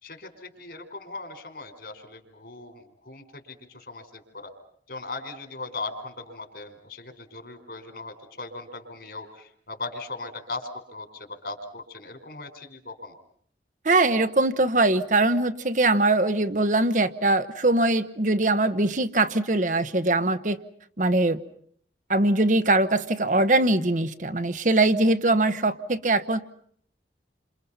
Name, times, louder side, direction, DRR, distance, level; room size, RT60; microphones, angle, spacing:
voice 1, 0.0-4.5 4.9-13.2, left 3 dB, 60° left, 7 dB, 4.5 m, -39 dB
voice 2, 13.8-20.6 21.0-21.4 22.1-26.4, right 2 dB, 45° right, 10 dB, 1.1 m, -22 dB
30.0 x 27.0 x 5.6 m, 0.63 s
head